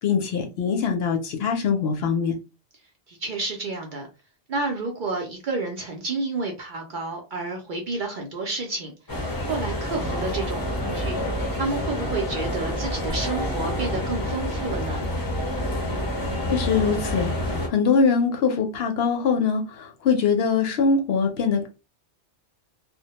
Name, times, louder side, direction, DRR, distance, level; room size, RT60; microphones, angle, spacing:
voice 1, 0.0-2.4 16.5-21.7, left 5 dB, 65° left, 0.7 m, -23 dB
voice 2, 3.1-4.1 4.5-8.9 9.5-11.2 11.5-15.1, right 3 dB, 55° right, 0.6 m, -30 dB
sound 1, 9.1-17.7, left 1 dB, 25° left, 0.5 m, -28 dB
2.1 x 2.1 x 2.8 m
omnidirectional pair, 1.2 m